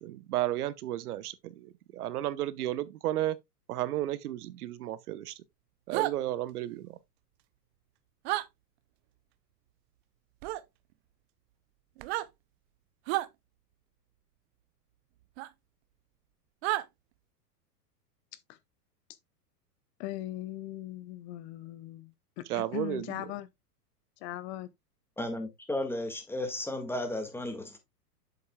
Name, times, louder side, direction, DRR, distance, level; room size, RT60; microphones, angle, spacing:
voice 1, 0.0-3.4 3.7-5.3 5.9-6.9 22.5-23.2, right 14 dB, 70° right, 0.9 m, -33 dB
sound 1, 5.9-6.1 8.2-8.5 10.4-10.6 12.0-12.3 13.1-13.3 15.4-15.5 16.6-16.8, right 17 dB, 45° right, 0.7 m, -30 dB
voice 2, 20.0-23.5 24.2-24.7, left 15 dB, 45° left, 0.8 m, -39 dB
voice 3, 25.2-27.8, left 1 dB, 5° left, 1.7 m, -34 dB
7.9 x 7.4 x 2.2 m
hypercardioid pair, 120°, 48 cm